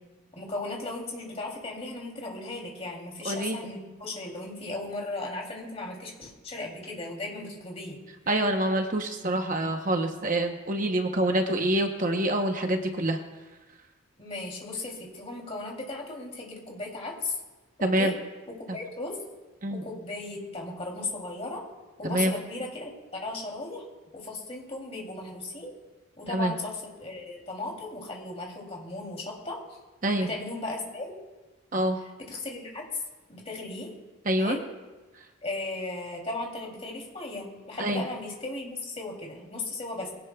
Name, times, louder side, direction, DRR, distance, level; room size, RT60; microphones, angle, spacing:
voice 1, 0.3-8.0 14.2-17.4 17.8-18.1 18.5-19.2 19.7-21.6 22.0-23.8 24.1-25.7 26.2-29.6 30.2-31.1 32.2-33.0 33.3-33.9 34.4-34.6 35.4-40.1, left 2 dB, 30° left, -1 dB, 3.0 m, -36 dB
voice 2, 3.2-3.6 8.3-13.2 17.8-18.1 19.6-19.8 22.0-22.3 26.3-26.5 30.0-30.3 31.7-32.0 34.3-34.6 37.8-38.0, right 1 dB, 40° right, 4 dB, 0.9 m, -26 dB
22.0 x 17.0 x 2.3 m, 1.2 s
head